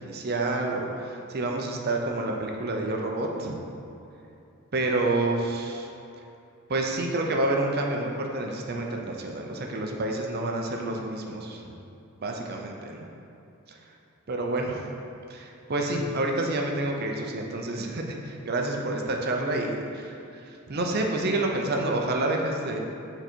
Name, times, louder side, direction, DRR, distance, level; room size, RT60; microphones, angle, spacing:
voice 1, 0.0-3.6 4.7-5.9 6.7-11.7 12.2-13.1 13.7-13.8 14.3-14.9 15.3-20.1 20.5-22.8, right 2 dB, 45° right, 1 dB, 0.6 m, -28 dB
6.9 x 3.9 x 4.4 m, 2.8 s
head